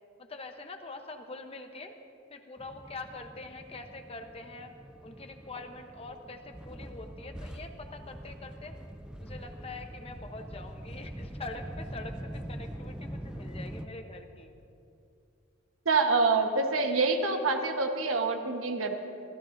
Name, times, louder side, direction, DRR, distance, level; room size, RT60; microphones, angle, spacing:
voice 1, 0.2-1.9 2.3-4.7 5.0-8.7 9.2-14.5, left 3 dB, 30° left, 6 dB, 0.8 m, -44 dB
sound 1, 2.6-13.9, equal, 5° right, 0.4 m, -43 dB
voice 2, 15.8-18.9, right 3 dB, 85° right, 4 dB, 1.2 m, -26 dB
24.5 x 15.0 x 2.6 m, 2.6 s
head